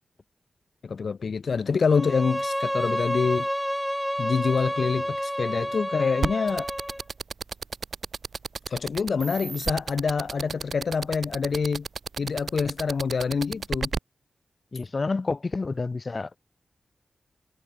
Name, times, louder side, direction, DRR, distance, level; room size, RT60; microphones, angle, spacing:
voice 1, 0.8-3.5 4.2-6.7 8.7-11.9 12.2-13.9, left 5 dB, 70° left, 2.8 m, -26 dB
Bowed string instrument, 1.9-7.0, equal, ahead, 0.6 m, -29 dB
sound 1, 6.2-14.0, right 5 dB, 65° right, 2.4 m, -31 dB
voice 2, 14.7-16.3, left 3 dB, 45° left, 0.9 m, -29 dB
cardioid pair, 70°, 0 cm